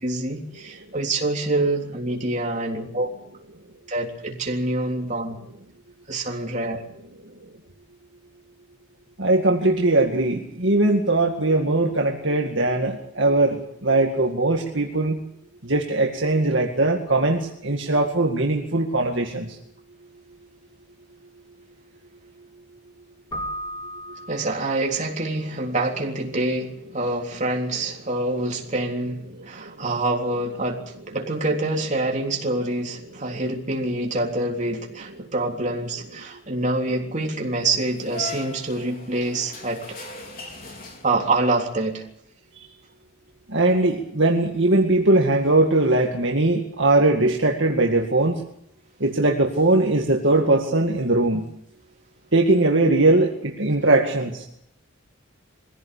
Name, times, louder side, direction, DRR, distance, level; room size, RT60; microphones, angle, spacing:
voice 1, 0.0-3.1 3.9-5.3 6.1-6.8 24.3-30.8 31.1-39.8 41.0-42.0, right 2 dB, 35° right, 1 dB, 3.5 m, -26 dB
voice 2, 9.2-15.2 15.6-19.6 43.5-48.4 49.0-51.5 52.3-54.5, right 2 dB, 60° right, 1 dB, 2.1 m, -20 dB
Keyboard (musical), 23.3-25.1, equal, 20° left, 2.7 m, -35 dB
sound 1, 37.6-41.5, left 3 dB, 40° left, 4.8 m, -39 dB
22.5 x 16.5 x 8.5 m, 0.72 s
head